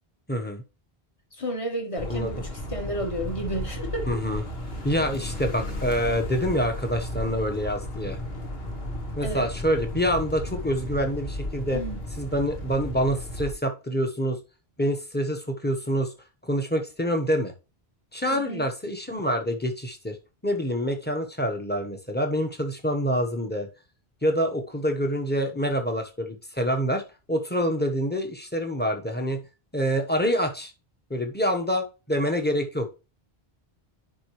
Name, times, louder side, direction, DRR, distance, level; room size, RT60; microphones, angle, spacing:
voice 1, 0.3-0.6 2.1-2.3 4.1-4.4 4.8-8.2 9.2-11.8 12.2-14.4 14.8-16.1 16.4-17.5 18.1-20.2 20.4-23.7 24.2-27.0 27.3-29.4 29.7-30.7 31.1-32.9, equal, 10° left, 1.1 m, -26 dB
voice 2, 1.3-4.1 9.2-9.5 11.7-12.0 18.3-18.6, right 1 dB, 30° left, 1.6 m, -32 dB
sound 1, 2.0-13.5, left 1 dB, 75° left, 2.0 m, -34 dB
9.9 x 5.3 x 3.2 m
omnidirectional pair, 1.0 m